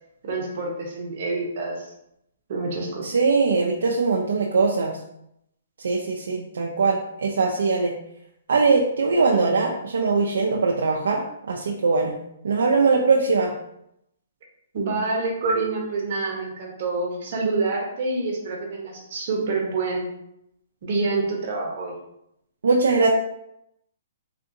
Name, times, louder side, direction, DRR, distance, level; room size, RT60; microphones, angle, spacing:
voice 1, 0.2-1.9 2.5-3.1 14.7-20.1 20.8-21.9, right 3 dB, 55° right, -1 dB, 0.9 m, -27 dB
voice 2, 3.0-5.0 5.8-7.9 8.5-12.1 12.4-13.5 22.6-23.1, right 4 dB, 80° right, -1 dB, 0.4 m, -21 dB
3.6 x 2.5 x 2.6 m, 0.79 s
hypercardioid pair, 140°, 0 cm